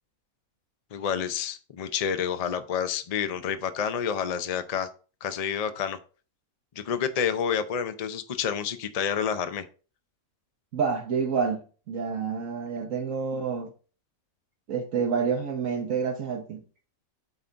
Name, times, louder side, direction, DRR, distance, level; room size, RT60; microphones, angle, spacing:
voice 1, 0.9-4.9 5.2-6.0 6.8-9.7, left 7 dB, 70° left, 0.3 m, -29 dB
voice 2, 10.7-13.7 14.7-16.6, right 6 dB, 65° right, 1.2 m, -28 dB
8.1 x 3.9 x 4.4 m
omnidirectional pair, 1.5 m